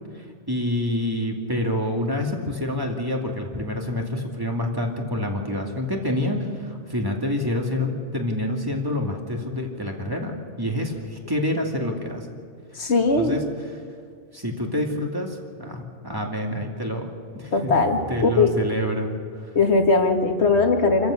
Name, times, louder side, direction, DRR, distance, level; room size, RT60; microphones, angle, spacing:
voice 1, 0.1-12.3 13.2-13.4 14.3-17.7 18.1-19.1 19.4-19.5, left 1 dB, 20° right, 1 dB, 2.5 m, -27 dB
voice 2, 12.7-13.4 17.5-18.5 19.6-21.1, left 3 dB, 70° left, 4 dB, 2.1 m, -20 dB
28.0 x 14.5 x 6.5 m, 2.3 s
omnidirectional pair, 1.2 m